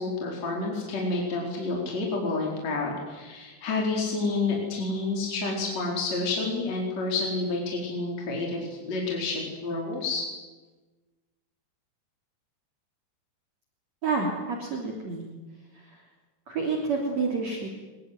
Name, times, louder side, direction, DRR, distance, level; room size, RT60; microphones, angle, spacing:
voice 1, 0.0-10.2, left 3 dB, 40° left, -1 dB, 5.5 m, -29 dB
voice 2, 14.0-15.3 15.7-16.0 16.5-17.7, right 4 dB, 40° right, -1 dB, 3.8 m, -29 dB
24.0 x 22.0 x 9.5 m, 1.2 s
omnidirectional pair, 5.0 m